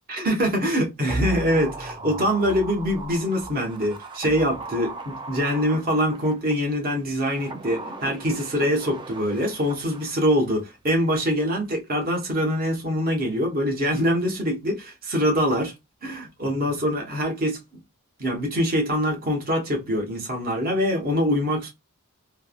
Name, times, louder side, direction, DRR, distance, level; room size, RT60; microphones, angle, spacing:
voice 1, 0.1-15.7 16.0-17.6 18.2-21.7, equal, 40° right, 1.0 m, -24 dB
sound 1, 1.1-6.5 7.2-10.4 10.7-10.8, right 2 dB, 20° right, 0.4 m, -36 dB
3.3 x 2.1 x 2.3 m
head